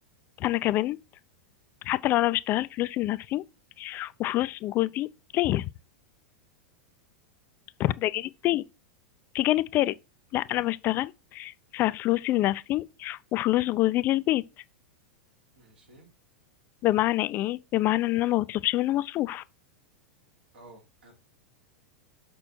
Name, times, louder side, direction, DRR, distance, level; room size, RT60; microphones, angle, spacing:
voice 1, 0.4-1.0 1.8-3.4 3.8-5.1 5.3-5.7 7.8-8.6 9.3-9.9 10.3-14.4 16.8-19.4, left 16 dB, 35° left, 0.4 m, -26 dB
voice 2, 15.6-16.1 20.5-21.1, right 2 dB, 75° right, 3.7 m, -53 dB
6.1 x 6.0 x 4.4 m
figure-of-eight pair, 95°, 6 cm